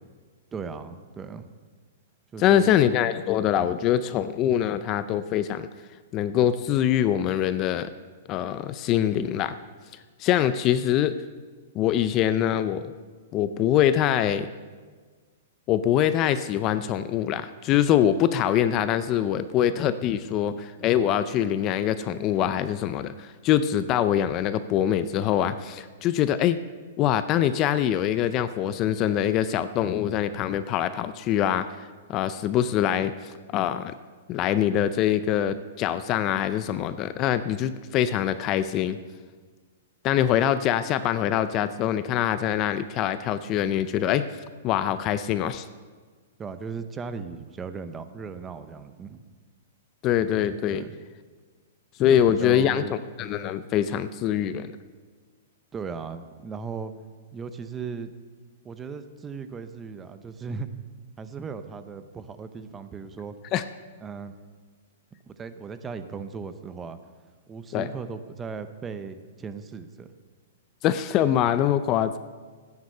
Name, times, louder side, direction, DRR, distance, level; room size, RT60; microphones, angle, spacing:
voice 1, 0.5-1.5 2.3-2.9 46.4-49.2 50.7-51.0 52.1-52.9 55.7-56.9 57.3-58.1 58.6-60.7 61.2-63.3 64.0-64.3 65.3-67.0 67.5-70.1, right 5 dB, 15° right, 10 dB, 0.7 m, -37 dB
voice 2, 2.4-5.7 6.1-7.9 8.3-9.6 10.2-11.1 11.7-12.9 13.3-14.5 15.7-26.6 27.0-31.7 32.1-33.9 34.3-39.0 40.0-44.3 44.6-45.7 50.0-50.8 52.0-54.7 63.5-63.6 67.7-67.9 70.8-72.2, left 10 dB, 30° left, 13 dB, 0.4 m, -24 dB
14.0 x 9.6 x 6.6 m, 1.5 s
hypercardioid pair, 160°, 0 cm